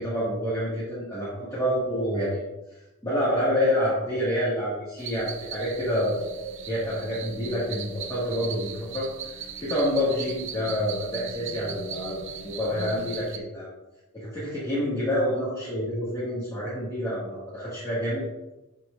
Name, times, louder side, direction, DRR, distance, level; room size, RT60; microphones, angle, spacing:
voice 1, 0.0-2.4 2.7-6.3 6.7-13.7 14.1-18.2, equal, 15° left, -11 dB, 2.0 m, -28 dB
sound 1, 5.0-13.4, right 6 dB, 60° right, 0.6 m, -38 dB
11.0 x 4.5 x 2.6 m, 1.0 s
head